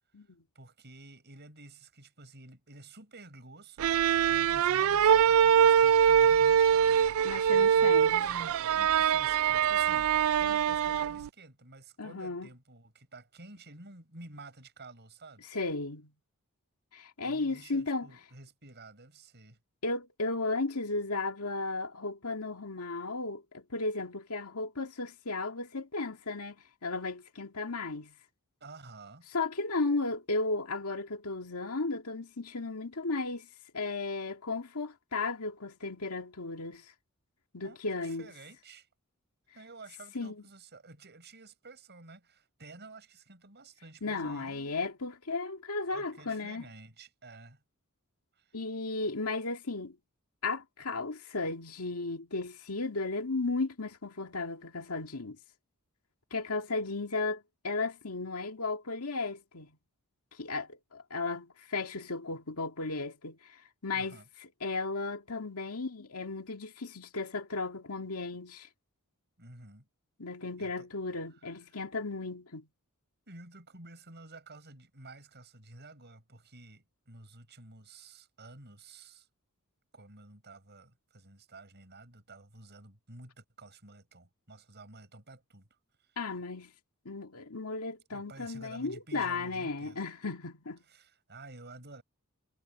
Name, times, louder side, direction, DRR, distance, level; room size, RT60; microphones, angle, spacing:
voice 1, 0.5-15.4 17.2-19.6 28.6-29.3 37.6-38.9 39.5-44.8 45.9-47.6 48.3-48.6 63.9-64.3 69.4-69.9 70.6-70.9 71.4-71.8 73.3-79.3 79.9-86.2 88.1-90.0 90.9-92.0, right 2 dB, 50° right, 6.7 m, -51 dB
sound 1, 3.8-11.3, right 8 dB, 65° right, 0.3 m, -23 dB
voice 2, 7.2-8.1 12.0-12.5 15.5-16.1 16.9-18.1 19.8-26.6 26.8-28.2 29.3-33.5 33.7-36.9 37.5-38.3 40.1-40.4 44.0-46.6 48.5-50.0 50.4-55.4 56.3-59.8 60.4-64.2 64.6-68.7 70.2-72.7 86.2-86.7 87.1-90.8, left 3 dB, 80° left, 2.0 m, -35 dB
head